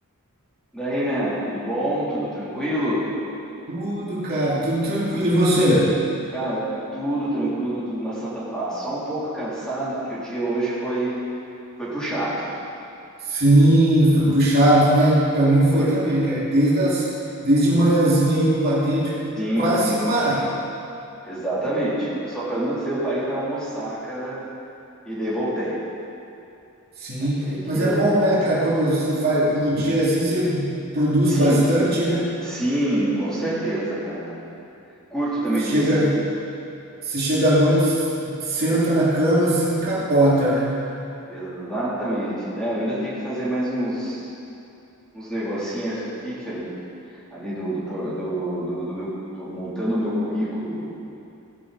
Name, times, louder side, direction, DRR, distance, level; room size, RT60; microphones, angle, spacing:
voice 1, 0.7-3.0 6.3-11.2 11.8-12.5 15.7-15.9 19.4-19.7 21.2-24.4 25.1-25.8 27.2-28.1 31.3-31.6 32.4-34.4 35.1-36.1 41.3-44.3 45.1-46.7 47.1-49.1 49.4-50.9, right 1 dB, 5° left, -10 dB, 3.5 m, -27 dB
voice 2, 3.7-5.9 13.3-17.1 17.4-19.2 19.5-20.5 27.0-32.3 35.7-36.1 37.0-40.8, right 1 dB, 45° right, -8 dB, 3.0 m, -19 dB
16.5 x 11.0 x 4.2 m, 2.7 s
head